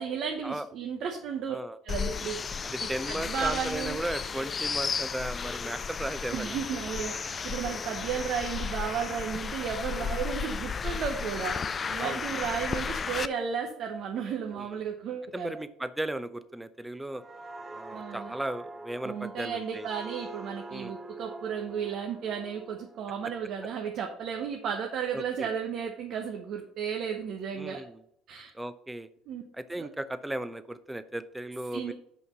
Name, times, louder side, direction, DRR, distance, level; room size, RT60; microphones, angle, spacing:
voice 1, 0.0-1.6 1.8-2.4 3.1-4.0 6.3-15.5 17.9-18.4 19.0-27.8 28.3-28.5 29.3-29.4 29.8-29.9 31.7-31.9, right 7 dB, 55° right, 2 dB, 1.0 m, -34 dB
sound 1, 1.9-13.3, left 6 dB, 35° left, 0.4 m, -34 dB
voice 2, 2.6-6.6 10.0-10.1 12.0-12.2 14.5-14.7 15.3-17.2 17.7-19.9 20.7-20.9 25.1-25.5 27.5-28.0 28.5-29.1 29.5-31.9, right 1 dB, 10° right, 12 dB, 0.7 m, -36 dB
sound 2, 17.1-24.6 25.0-25.2, right 2 dB, 35° right, 1.1 m, -45 dB
6.3 x 5.3 x 5.8 m, 0.71 s
hypercardioid pair, 60°, 0 cm